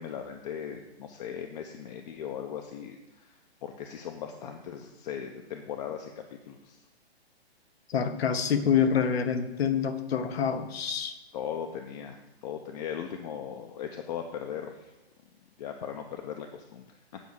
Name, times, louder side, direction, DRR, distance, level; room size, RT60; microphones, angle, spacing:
voice 1, 0.0-6.8 11.3-14.9 15.6-17.2, left 8 dB, 40° left, 3 dB, 0.8 m, -38 dB
voice 2, 7.9-11.2, left 7 dB, 70° left, 9 dB, 1.2 m, -26 dB
9.0 x 4.6 x 7.0 m, 1.0 s
hypercardioid pair, 145°, 32 cm